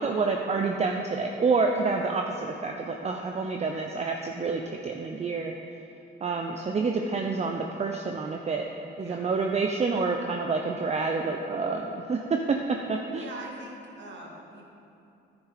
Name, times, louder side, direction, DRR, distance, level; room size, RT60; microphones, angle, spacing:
voice 1, 0.0-5.5 6.2-8.7 9.0-13.2, right 4 dB, 35° right, 3 dB, 0.7 m, -28 dB
voice 2, 13.1-14.6, right 2 dB, 65° right, -2 dB, 2.2 m, -42 dB
10.0 x 9.6 x 5.0 m, 2.7 s
cardioid pair, 90°, 20 cm